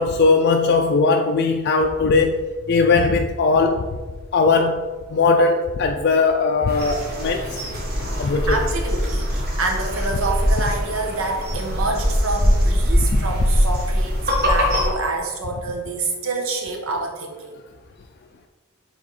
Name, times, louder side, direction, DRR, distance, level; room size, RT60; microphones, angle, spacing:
voice 1, 0.0-2.4 2.7-3.9 4.3-4.8 5.1-7.6 8.2-8.6 13.0-13.1, left 4 dB, 50° left, 4 dB, 0.4 m, -19 dB
sound 1, 6.7-14.9, equal, 50° right, 1.6 m, -22 dB
voice 2, 8.2-17.5, right 3 dB, 80° right, 2 dB, 1.2 m, -27 dB
7.5 x 3.6 x 4.1 m, 1.4 s
head